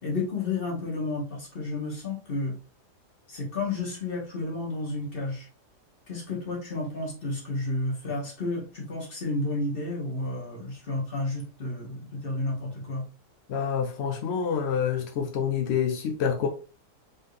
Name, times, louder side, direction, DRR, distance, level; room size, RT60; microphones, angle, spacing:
voice 1, 0.0-2.6 3.3-5.5 6.1-13.1, left 2 dB, 35° left, 1.7 m, -31 dB
voice 2, 13.5-16.5, left 7 dB, 70° left, 0.6 m, -27 dB
4.0 x 3.8 x 3.3 m
omnidirectional pair, 1.8 m